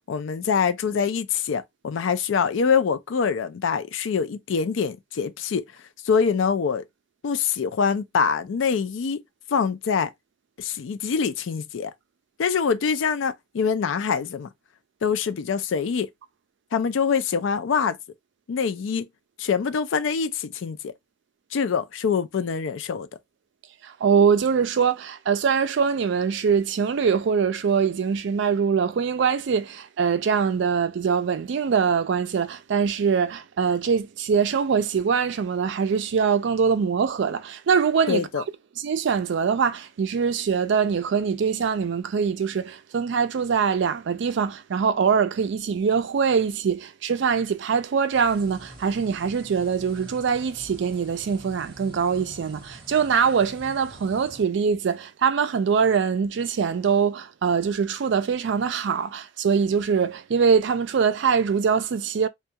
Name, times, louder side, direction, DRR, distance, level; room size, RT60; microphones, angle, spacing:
voice 1, 0.1-5.6 6.0-6.8 7.2-9.2 9.5-10.1 10.6-11.9 12.4-14.5 15.0-16.1 16.7-18.0 18.5-19.1 19.4-20.9 21.5-23.1 38.1-38.4, left 6 dB, 70° left, 0.4 m, -24 dB
voice 2, 23.8-38.4 38.8-62.3, right 6 dB, 60° right, 0.4 m, -23 dB
sound 1, 48.1-54.4, equal, 30° right, 0.9 m, -46 dB
2.3 x 2.2 x 2.7 m
head